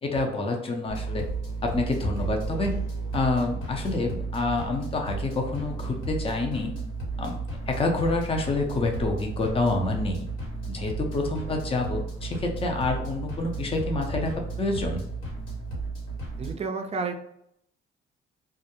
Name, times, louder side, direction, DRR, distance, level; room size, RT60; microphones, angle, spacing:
voice 1, 0.0-1.2 1.6-2.8 3.1-6.7 7.2-7.4 7.7-10.3 10.7-15.0, left 2 dB, 30° left, 2 dB, 0.5 m, -27 dB
sound 1, 0.9-16.5, right 3 dB, 80° left, 1.2 m, -33 dB
voice 2, 16.4-17.2, right 4 dB, 30° right, 5 dB, 0.4 m, -30 dB
2.3 x 2.0 x 2.9 m, 0.75 s
cardioid pair, 90°, 20 cm